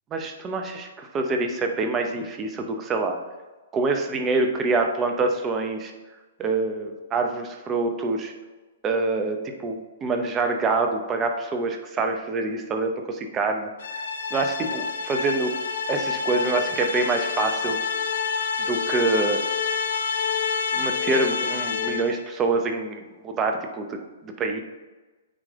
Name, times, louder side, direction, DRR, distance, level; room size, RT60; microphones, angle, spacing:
voice 1, 0.1-3.2 3.7-5.9 6.4-8.3 8.8-13.7 14.3-15.5 15.9-17.8 18.6-19.4 20.7-24.6, right 3 dB, 20° right, 4 dB, 0.8 m, -26 dB
sound 1, 13.8-22.2, left 6 dB, 70° left, 0.6 m, -28 dB
8.9 x 3.3 x 3.7 m, 1.2 s
hypercardioid pair, 130°, 0 cm